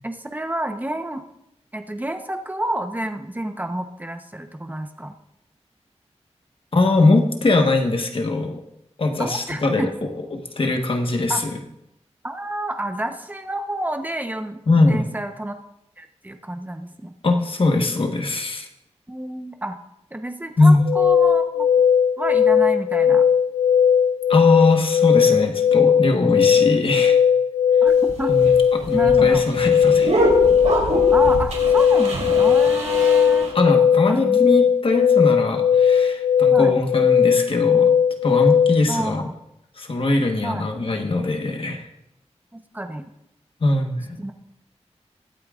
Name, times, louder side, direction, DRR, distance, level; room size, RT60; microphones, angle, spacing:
voice 1, 0.0-1.2 1.7-5.1 9.2-9.9 11.3-11.4 12.2-14.6 14.9-15.5 16.0-17.1 19.1-19.8 20.1-21.7 22.2-23.3 27.8-28.3 28.9-29.4 31.1-33.5 34.1-34.4 36.5-36.7 38.9-39.3 40.4-40.7 42.5-43.1 44.2-44.3, right 1 dB, 15° right, 6 dB, 0.9 m, -29 dB
voice 2, 6.7-8.6 9.0-11.6 14.7-15.1 17.2-18.7 20.6-20.8 24.3-27.2 28.3-30.2 33.5-37.9 38.2-39.3 39.8-41.9 43.6-44.3, left 2 dB, 50° left, 3 dB, 1.3 m, -21 dB
sound 1, 20.8-38.9, left 7 dB, 75° left, 0.4 m, -17 dB
sound 2, 27.9-33.5, right 1 dB, 85° right, 3.2 m, -25 dB
22.0 x 8.7 x 2.5 m, 0.83 s
wide cardioid pair, 110°, 12 cm